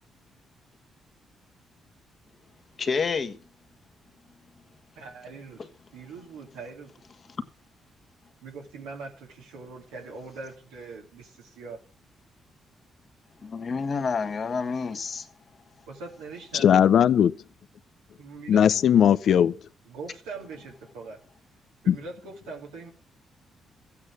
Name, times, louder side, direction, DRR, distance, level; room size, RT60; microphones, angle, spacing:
voice 1, 2.8-3.4 13.4-15.3, left 5 dB, 50° left, 1.5 m, -28 dB
voice 2, 5.0-6.9 8.4-11.8 15.9-16.8 18.2-18.6 19.8-21.2 21.8-22.9, right 4 dB, 90° right, 2.6 m, -42 dB
voice 3, 16.5-17.3 18.5-19.5 21.9-22.0, left 9 dB, 65° left, 0.5 m, -18 dB
13.5 x 8.7 x 6.1 m
supercardioid pair, 50°, 0 cm